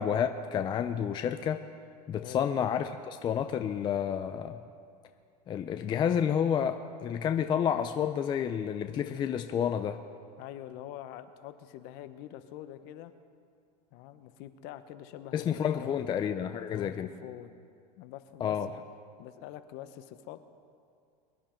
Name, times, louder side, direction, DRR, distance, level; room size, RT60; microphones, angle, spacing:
voice 1, 0.0-1.6 2.1-4.6 5.5-10.0 15.3-17.1 18.4-18.7, left 8 dB, 20° left, 7 dB, 0.4 m, -30 dB
voice 2, 10.4-13.1 13.9-16.3 16.7-17.6 18.0-18.6 19.2-20.4, left 12 dB, 50° left, 11 dB, 0.9 m, -45 dB
23.0 x 10.5 x 4.4 m, 2.3 s
supercardioid pair, 135°, 21 cm